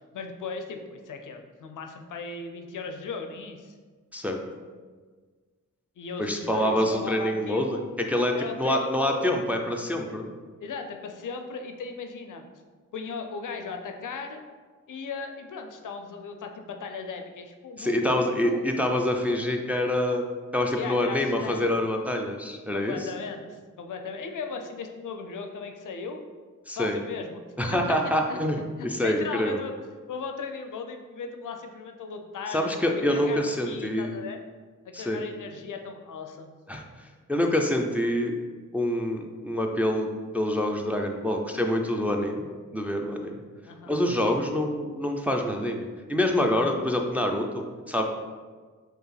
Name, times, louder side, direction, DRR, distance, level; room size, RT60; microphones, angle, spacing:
voice 1, 0.1-3.8 6.0-7.9 8.3-9.4 10.6-12.5 12.9-14.4 14.9-18.7 20.8-21.8 22.7-26.2 26.8-27.4 27.7-29.7 30.1-32.7 32.9-34.4 34.8-36.5 43.7-44.0, left 4 dB, 70° left, 5 dB, 0.5 m, -37 dB
voice 2, 6.2-7.8 8.1-10.3 17.8-20.2 20.5-23.0 26.7-27.0 27.6-29.6 32.5-34.1 34.9-35.2 36.7-36.8 37.3-38.4 38.7-42.5 42.7-43.4 43.9-48.0, left 1 dB, 5° right, 2 dB, 0.4 m, -26 dB
4.5 x 2.5 x 3.2 m, 1.5 s
cardioid pair, 55°, 33 cm